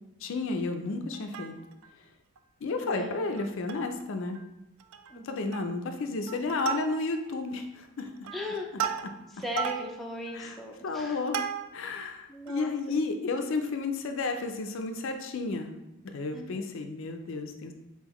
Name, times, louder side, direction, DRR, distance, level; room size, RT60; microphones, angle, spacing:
voice 1, 0.2-1.5 2.6-4.4 5.2-8.1 10.4-10.5 10.8-11.4 11.7-15.7 16.1-17.7, left 3 dB, 60° left, 6 dB, 0.4 m, -32 dB
Plucked string instrument, 1.1-1.9 2.4-2.5 2.7-2.9 3.4-4.0 4.3-4.5 4.8-5.2 5.5-5.9 6.3-7.3 7.8-12.0 12.5-12.6, right 8 dB, 70° right, 0.3 m, -36 dB
voice 2, 2.8-3.3 5.1-5.5 8.3-8.7 9.3-11.2 12.3-12.7 16.3-16.7, left 1 dB, ahead, -2 dB, 0.4 m, -38 dB
4.2 x 3.7 x 3.0 m, 0.91 s
head